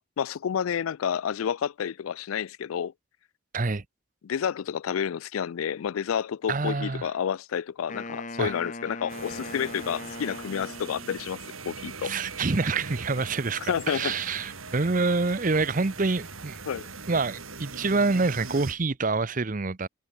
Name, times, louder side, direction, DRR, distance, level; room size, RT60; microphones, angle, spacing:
voice 1, 0.0-2.9 4.2-11.4 11.7-12.1 13.7-14.2 16.7-16.9, left 8 dB, 85° left, 0.4 m, -30 dB
voice 2, 6.5-7.1 8.4-8.5 12.0-16.6 17.1-19.9, right 3 dB, 40° right, 0.7 m, -26 dB
Wind instrument woodwind instrument, 7.9-11.4, left 2 dB, 35° left, 2.7 m, -40 dB
sound 1, 9.1-18.7, right 4 dB, 85° right, 6.7 m, -41 dB
sound 2, 12.6-18.8, left 3 dB, 60° left, 7.0 m, -57 dB
head